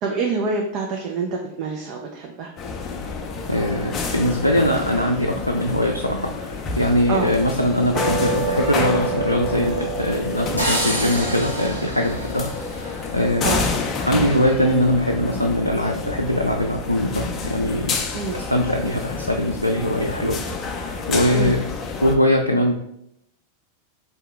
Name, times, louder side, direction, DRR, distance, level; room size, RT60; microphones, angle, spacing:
voice 1, 0.0-2.5 7.1-7.3 13.4-13.7 18.1-18.4 21.3-21.5, right 4 dB, 40° right, 0 dB, 0.5 m, -26 dB
sound 1, 2.6-22.2, left 4 dB, 30° left, 0.5 m, -29 dB
voice 2, 3.5-13.6 14.1-18.0 18.3-21.7 22.0-22.7, left 1 dB, 85° left, 1 dB, 0.3 m, -22 dB
sound 2, 8.0-14.5, right 4 dB, ahead, 0.8 m, -31 dB
sound 3, 10.6-13.4, right 1 dB, 90° right, 1.0 m, -28 dB
3.7 x 2.8 x 3.3 m, 0.78 s
figure-of-eight pair, 90°, 0 cm